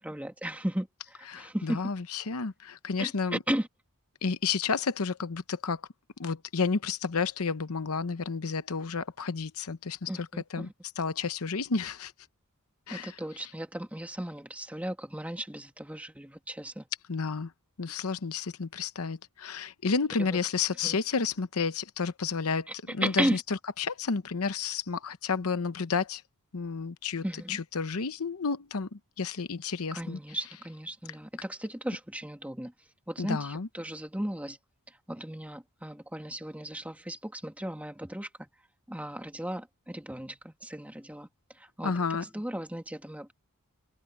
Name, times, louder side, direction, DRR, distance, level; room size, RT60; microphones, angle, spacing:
voice 1, 0.0-1.8 3.0-3.7 10.1-10.7 12.9-16.9 20.3-20.4 20.8-21.0 22.7-22.8 23.0-23.4 27.2-27.6 29.9-32.7 33.1-34.6 34.9-38.5 38.9-43.3, right 1 dB, 5° right, 1.9 m, -35 dB
voice 2, 1.3-3.4 4.2-5.8 6.2-10.1 10.5-10.7 11.0-12.1 12.9-13.1 17.1-17.5 17.8-22.7 22.9-23.4 23.8-26.2 26.5-30.2 33.2-33.7 41.8-42.2, left 5 dB, 70° left, 0.8 m, -31 dB
head